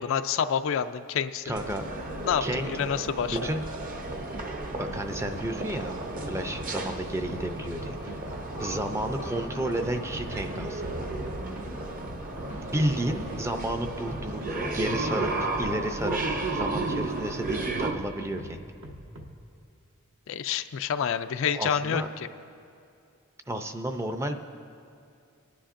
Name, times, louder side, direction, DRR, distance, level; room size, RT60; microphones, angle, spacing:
voice 1, 0.0-1.4 2.3-3.4 20.3-22.0, left 7 dB, 65° left, 10 dB, 0.4 m, -28 dB
voice 2, 1.5-1.8 2.4-2.7 3.2-3.6 4.7-5.9 6.3-8.3 8.6-11.1 12.5-16.2 16.5-18.6 21.5-22.1 23.5-24.4, right 1 dB, 15° right, 6 dB, 0.5 m, -32 dB
sound 1, 1.5-17.9, right 2 dB, 40° right, 0.8 m, -33 dB
sound 2, 4.0-4.4 4.8-6.9 7.3-9.4 9.8-14.5 14.9-15.8 16.3-17.0 17.4-19.3, right 1 dB, 70° right, 1.1 m, -43 dB
25.5 x 10.0 x 2.5 m, 2.4 s
head